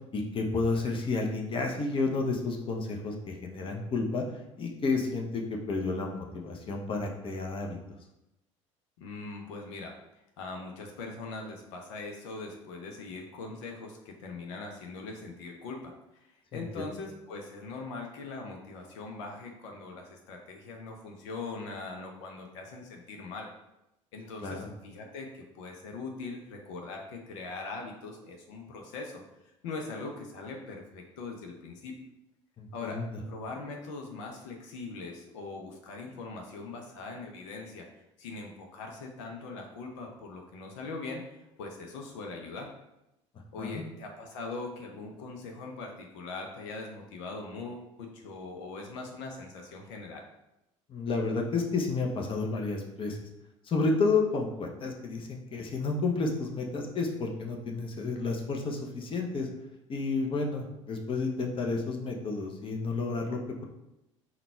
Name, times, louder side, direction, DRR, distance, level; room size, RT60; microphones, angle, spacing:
voice 1, 0.1-4.2 4.6-7.8 16.5-16.9 24.4-24.6 32.6-33.2 43.6-43.8 50.9-53.2 53.6-59.5 59.9-63.7, left 3 dB, 35° left, 1 dB, 0.8 m, -31 dB
voice 2, 9.0-10.0 10.4-23.5 24.1-29.2 29.6-32.0 32.7-37.9 38.2-41.2 41.6-42.7 43.5-50.3, left 3 dB, 70° left, 2 dB, 0.7 m, -41 dB
3.9 x 2.3 x 4.3 m, 0.90 s
hypercardioid pair, 65°, 16 cm